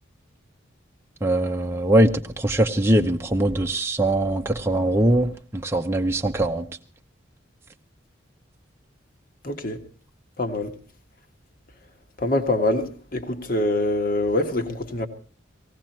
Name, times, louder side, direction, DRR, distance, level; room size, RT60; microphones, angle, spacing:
voice 1, 1.2-6.7, right 1 dB, 15° right, 0.8 m, -21 dB
voice 2, 9.4-9.8 10.4-10.7 12.2-15.1, left 1 dB, 45° left, 1.7 m, -24 dB
18.5 x 17.0 x 4.4 m
head